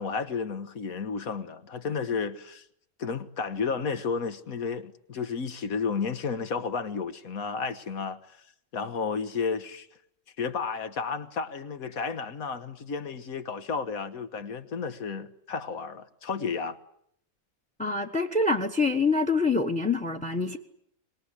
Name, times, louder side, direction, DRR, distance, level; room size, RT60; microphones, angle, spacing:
voice 1, 0.0-2.7 3.0-8.4 8.7-9.9 10.4-16.8, left 5 dB, 75° left, 1.8 m, -32 dB
voice 2, 17.8-20.6, left 3 dB, 5° left, 1.1 m, -25 dB
25.0 x 20.5 x 9.9 m
omnidirectional pair, 1.5 m